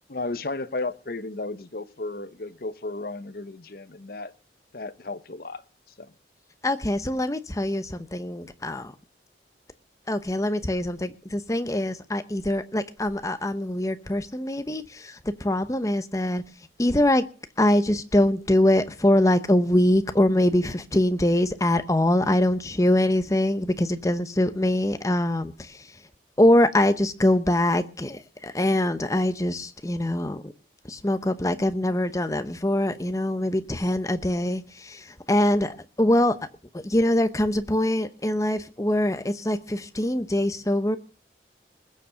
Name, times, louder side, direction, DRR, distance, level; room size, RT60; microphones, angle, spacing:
voice 1, 0.1-4.3 4.7-5.6 6.0-6.1, left 2 dB, 50° left, 0.8 m, -34 dB
voice 2, 6.6-8.9 10.1-16.4 16.8-17.2 17.6-25.9 26.4-30.5 30.8-36.4 36.7-41.0, left 1 dB, 15° left, 0.8 m, -23 dB
20.5 x 7.1 x 6.3 m
head